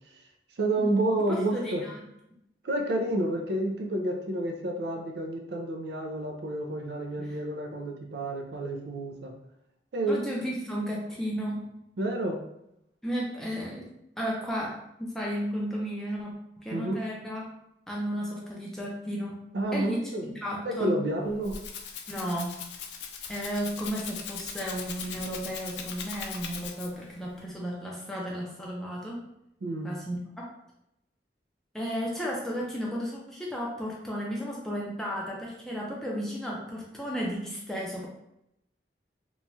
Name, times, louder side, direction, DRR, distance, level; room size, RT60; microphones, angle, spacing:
voice 1, 0.6-1.8 2.6-9.3 9.9-10.3 12.0-12.4 16.7-17.0 19.5-20.3 20.6-21.6 29.6-29.9, right 1 dB, 70° right, 3 dB, 0.4 m, -29 dB
voice 2, 1.3-1.9 7.2-7.4 10.1-11.7 13.0-13.9 14.2-17.5 17.9-19.4 19.7-20.0 20.4-21.0 22.1-22.6 23.3-29.3 29.8-30.5 31.7-38.1, equal, 5° left, -4 dB, 0.5 m, -34 dB
Rattle (instrument), 21.2-27.1, left 6 dB, 80° left, 0.4 m, -40 dB
3.0 x 2.2 x 2.6 m, 0.82 s
head